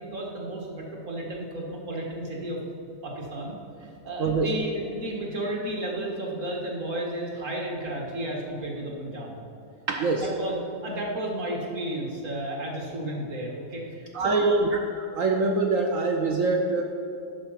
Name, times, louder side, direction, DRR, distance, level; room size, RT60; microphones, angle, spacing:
voice 1, 0.0-2.6 3.0-3.5 3.8-9.4 10.1-14.6, right 1 dB, 45° right, -1 dB, 1.7 m, -33 dB
voice 2, 4.2-4.5 9.9-10.3 14.1-14.7 15.1-16.8, right 3 dB, 70° right, 3 dB, 0.7 m, -24 dB
11.0 x 4.6 x 5.6 m, 2.7 s
omnidirectional pair, 2.0 m